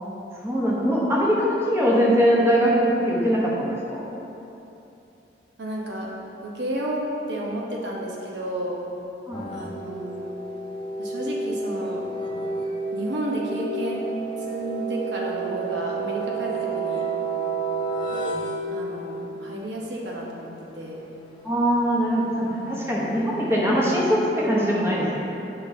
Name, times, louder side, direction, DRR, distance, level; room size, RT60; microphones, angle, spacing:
voice 1, 0.4-4.1 9.3-9.4 21.4-25.2, equal, 15° right, -6 dB, 1.0 m, -22 dB
voice 2, 5.6-6.1 6.4-8.8 9.5-10.3 11.0-12.0 12.9-14.1 14.4-17.0 18.7-21.0, right 1 dB, 80° right, -3 dB, 1.0 m, -31 dB
sound 1, 9.3-19.3 21.4-24.1, right 3 dB, 30° left, 0.7 m, -31 dB
8.3 x 5.7 x 2.7 m, 2.9 s
head